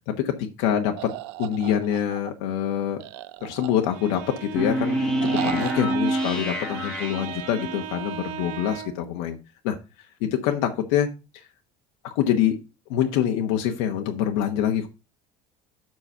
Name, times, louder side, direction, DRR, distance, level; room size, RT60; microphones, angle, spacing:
voice 1, 0.1-0.9 1.4-3.0 3.4-9.4 9.6-9.8 10.2-11.1 11.3-11.5 12.0-12.6 12.9-14.9, left 10 dB, 80° left, 3 dB, 1.2 m, -25 dB
sound 1, 1.0-2.3 3.0-4.1 5.2-6.0, right 18 dB, 85° right, 0.6 m, -35 dB
Bowed string instrument, 3.8-9.1, right 11 dB, 50° right, 0.8 m, -37 dB
sound 2, 4.6-7.8, equal, 5° left, 1.3 m, -27 dB
7.8 x 5.9 x 5.5 m, 0.30 s
cardioid pair, 175°, 13 cm